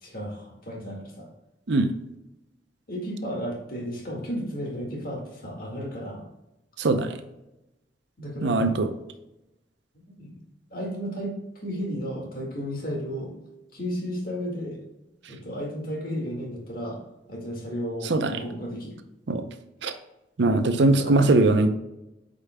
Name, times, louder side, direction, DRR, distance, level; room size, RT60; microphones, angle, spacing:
voice 1, 0.0-1.3 2.9-6.3 8.2-8.8 9.9-10.4 10.7-13.3 13.7-14.8 15.3-17.0 17.3-19.0 21.0-21.2, equal, 50° left, 0 dB, 1.9 m, -33 dB
voice 2, 6.8-7.1 8.4-8.9 18.1-18.3 19.3-19.4 19.8-19.9 20.4-21.7, right 2 dB, 70° right, 9 dB, 0.6 m, -21 dB
8.3 x 5.2 x 2.2 m, 0.93 s
head